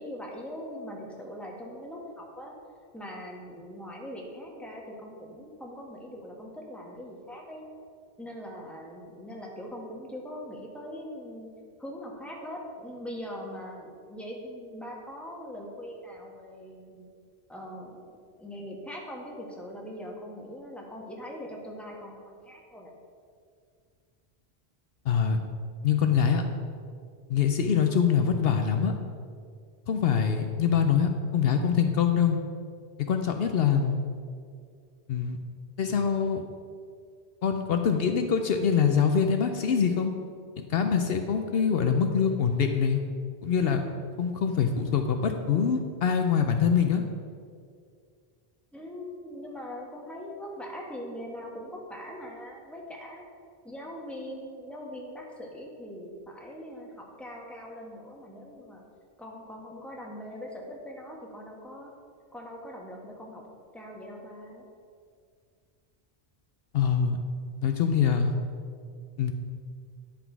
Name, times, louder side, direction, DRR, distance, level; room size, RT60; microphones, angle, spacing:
voice 1, 0.0-2.5 2.9-7.6 8.2-11.5 11.8-17.1 17.5-22.9 48.7-53.2 53.6-58.8 59.2-61.9 62.3-63.4 63.7-64.7, equal, ahead, -2 dB, 1.3 m, -41 dB
voice 2, 25.1-25.4 25.8-26.4 27.3-28.9 29.9-32.4 33.1-34.0 35.1-35.4 35.8-36.4 37.4-40.1 40.6-43.0 43.4-43.8 44.2-47.0 66.7-67.2 67.6-68.3 69.2-69.3, left 7 dB, 70° left, 5 dB, 0.8 m, -24 dB
10.0 x 6.0 x 4.6 m, 2.2 s
omnidirectional pair, 1.1 m